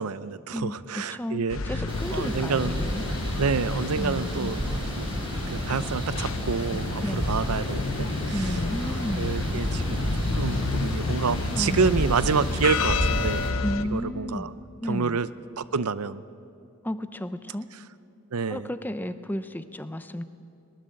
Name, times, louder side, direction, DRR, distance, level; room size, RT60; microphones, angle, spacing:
voice 1, 0.0-1.6 2.1-2.9 3.4-4.6 5.0-5.1 5.5-8.6 8.9-13.5 13.9-14.5 14.9-15.3 15.6-16.2 18.3-18.7, right 5 dB, 85° right, 15 dB, 0.6 m, -28 dB
voice 2, 0.5-3.0 4.0-4.5 7.0-7.5 8.3-9.4 11.5-12.1 13.6-14.5 14.8-15.2 16.8-17.7 18.5-20.2, equal, 10° left, 11 dB, 0.6 m, -33 dB
sound 1, 1.5-13.8, left 4 dB, 65° left, 0.7 m, -31 dB
sound 2, 1.9-13.5, equal, 25° right, 3.8 m, -31 dB
21.5 x 20.0 x 7.7 m, 2.5 s
head